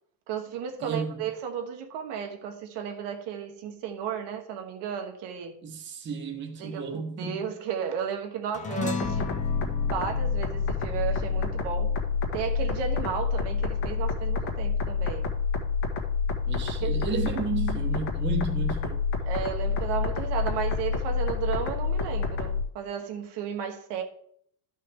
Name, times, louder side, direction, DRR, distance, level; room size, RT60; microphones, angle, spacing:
voice 1, 0.3-5.6 6.6-9.3 9.9-11.9 12.3-15.3 16.8-17.0 19.3-24.0, right 8 dB, 60° right, 1.3 m, -34 dB
voice 2, 0.8-1.2 5.6-7.5 16.5-19.1, right 4 dB, 25° right, 1.0 m, -32 dB
sound 1, 8.5-13.2, left 4 dB, 15° left, 0.4 m, -36 dB
sound 2, 9.0-22.6, left 5 dB, 70° left, 2.0 m, -28 dB
12.5 x 5.7 x 3.6 m
cardioid pair, 160°, 48 cm